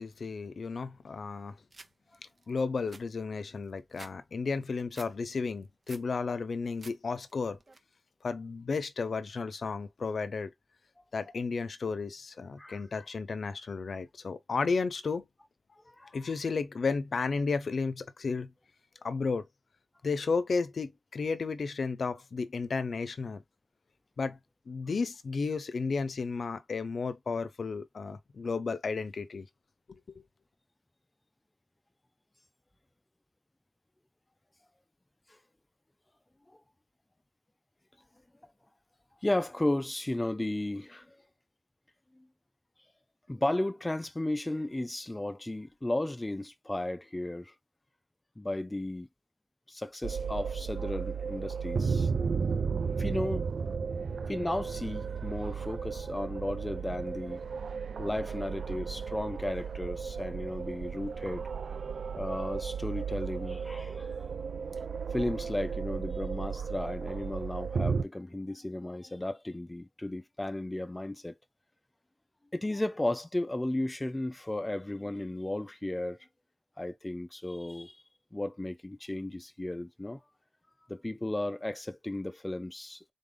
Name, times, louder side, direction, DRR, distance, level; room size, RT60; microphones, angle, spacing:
voice 1, 0.0-1.5 2.5-7.6 8.2-10.5 11.1-15.3 16.1-18.5 19.0-19.5 20.0-23.4 24.2-24.4 24.7-29.5 29.9-30.2, left 4 dB, 80° left, 0.7 m, -33 dB
sound 1, 1.7-1.9 2.4-2.5 2.7-4.1 4.5-5.1 5.5-6.1 6.5-7.0 7.3-7.8, right 3 dB, 50° right, 0.9 m, -50 dB
voice 2, 39.2-41.2 42.2-42.3 43.3-47.5 48.4-49.1 49.7-52.1 53.0-53.5 54.3-57.4 58.0-61.5 62.2-64.2 65.1-71.4 72.5-76.2 76.8-78.0 78.3-80.2 80.9-83.1, left 1 dB, 20° left, 0.5 m, -34 dB
sound 2, 50.0-68.0, right 5 dB, 90° right, 0.3 m, -34 dB
3.9 x 3.5 x 3.7 m
wide cardioid pair, 70°, 0 cm